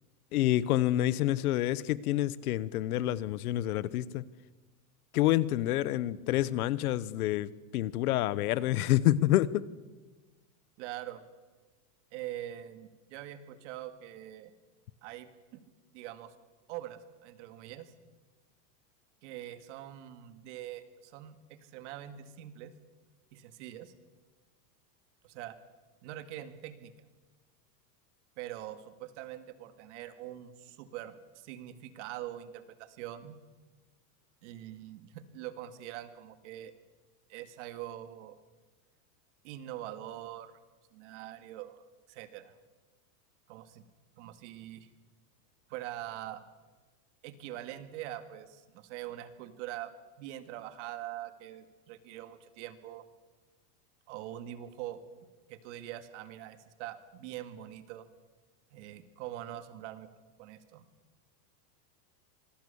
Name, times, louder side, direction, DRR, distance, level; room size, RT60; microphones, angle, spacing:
voice 1, 0.3-4.2 5.1-9.7, left 14 dB, 70° left, 1.1 m, -28 dB
voice 2, 10.8-11.2 12.1-14.5 15.0-15.6 15.9-16.3 16.7-17.9 19.2-22.7 23.3-23.9 25.2-25.6 26.0-26.9 28.4-33.4 34.4-36.7 37.3-38.4 39.4-40.5 40.9-42.6 43.5-43.8 44.2-44.9 45.7-46.4 47.2-49.9 50.2-53.0 54.1-55.0 55.5-58.1 58.7-60.1 60.4-60.9, right 13 dB, 50° right, 2.1 m, -43 dB
26.5 x 20.0 x 7.1 m
supercardioid pair, 170°, 46 cm